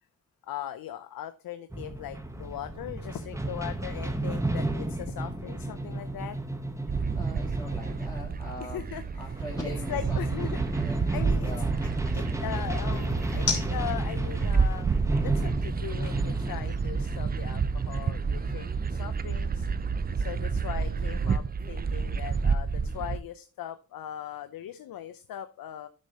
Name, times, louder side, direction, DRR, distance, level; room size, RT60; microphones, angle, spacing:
voice 1, 0.5-6.4 8.6-9.4 9.9-10.6 10.8-11.5 12.1-14.9 15.2-19.7 20.2-25.9, left 11 dB, 70° left, 10 dB, 0.6 m, -39 dB
sound 1, 1.7-19.2, right 1 dB, 10° right, 1.0 m, -33 dB
sound 2, 3.7-17.9, left 5 dB, 55° left, 2.7 m, -43 dB
sound 3, 6.9-23.2, right 5 dB, 25° right, 0.4 m, -30 dB
voice 2, 7.1-8.9 9.2-10.2 10.7-11.1 11.4-11.9, left 1 dB, 10° left, -5 dB, 2.0 m, -41 dB
12.0 x 6.3 x 2.8 m, 0.35 s
cardioid pair, 95°, 36 cm